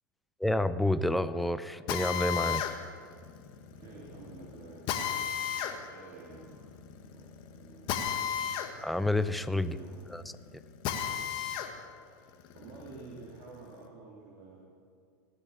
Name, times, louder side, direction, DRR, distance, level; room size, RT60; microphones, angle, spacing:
voice 1, 0.4-2.6 8.8-9.8 10.1-10.2, left 1 dB, ahead, 12 dB, 0.5 m, -29 dB
Drill, 1.9-11.7 12.2-13.8, left 9 dB, 45° left, 1.6 m, -35 dB
voice 2, 3.6-8.1 9.5-10.0 12.5-14.7, right 3 dB, 45° right, -5 dB, 3.4 m, -51 dB
17.0 x 8.3 x 7.4 m, 2.2 s
hypercardioid pair, 90°, 11 cm